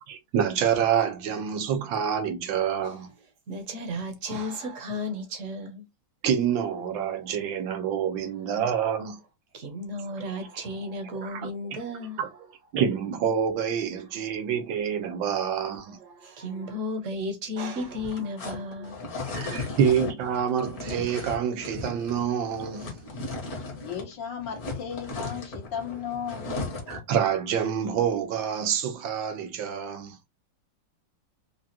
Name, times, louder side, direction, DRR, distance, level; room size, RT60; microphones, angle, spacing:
voice 1, 0.1-3.1 6.2-9.2 11.2-11.5 12.2-12.3 12.7-16.0 19.3-22.9 26.9-30.2, right 8 dB, 85° right, 1.6 m, -27 dB
voice 2, 3.5-5.8 7.1-7.4 9.5-12.3 14.1-14.2 16.0-19.8, left 1 dB, 50° right, 1.1 m, -34 dB
sound 1, 17.8-24.1 24.4-27.1, left 3 dB, 55° left, 1.7 m, -36 dB
voice 3, 23.8-26.6, left 7 dB, 70° left, 1.7 m, -35 dB
4.8 x 2.4 x 2.7 m
omnidirectional pair, 2.0 m